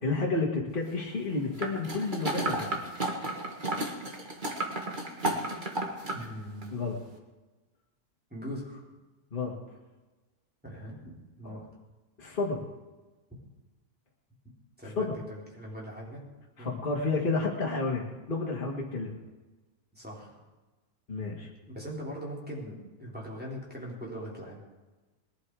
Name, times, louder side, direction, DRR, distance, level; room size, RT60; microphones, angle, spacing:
voice 1, 0.0-2.8 6.7-7.0 9.3-9.5 11.4-11.6 12.2-12.6 15.0-15.1 16.6-19.2 21.1-21.5, left 3 dB, 35° left, -3 dB, 2.0 m, -31 dB
sound 1, 1.6-6.2 6.6-6.7, right 2 dB, 30° right, 1.9 m, -33 dB
voice 2, 6.1-6.8 8.3-8.8 10.6-11.6 14.8-16.2 16.6-16.8 19.9-20.3 21.7-24.6, equal, 5° right, -4 dB, 4.0 m, -41 dB
20.5 x 11.5 x 4.8 m, 1.2 s
omnidirectional pair, 1.6 m